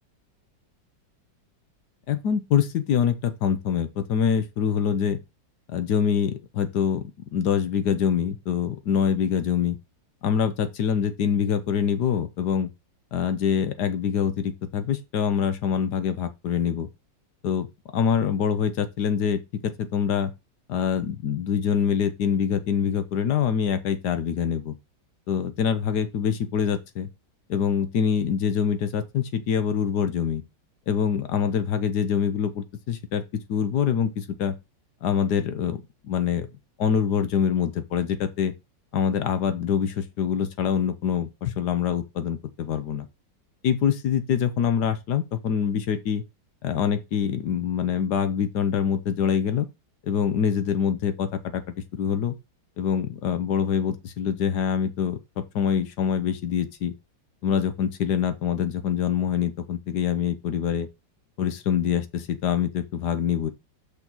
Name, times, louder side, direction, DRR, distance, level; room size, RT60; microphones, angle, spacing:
voice 1, 2.1-5.2 5.7-9.8 10.2-12.7 13.1-16.9 17.4-17.7 17.9-20.3 20.7-24.7 25.3-27.1 27.5-30.4 30.9-34.5 35.0-36.5 36.8-38.5 38.9-43.1 43.6-46.2 46.6-49.7 50.0-51.6 51.9-52.3 52.8-56.9 57.4-60.9 61.4-63.5, left 7 dB, 65° left, 1.3 m, -25 dB
6.0 x 3.9 x 6.0 m
omnidirectional pair, 2.0 m